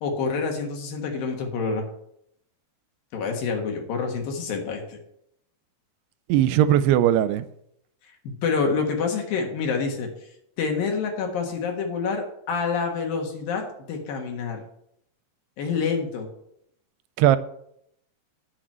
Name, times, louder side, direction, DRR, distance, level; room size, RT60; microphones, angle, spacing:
voice 1, 0.0-1.9 3.1-5.0 8.2-10.1 10.6-14.6 15.6-16.3, left 5 dB, 65° left, 3.1 m, -27 dB
voice 2, 6.3-7.5 17.2-17.4, right 11 dB, 85° right, 2.5 m, -18 dB
10.0 x 6.3 x 7.5 m
omnidirectional pair, 4.7 m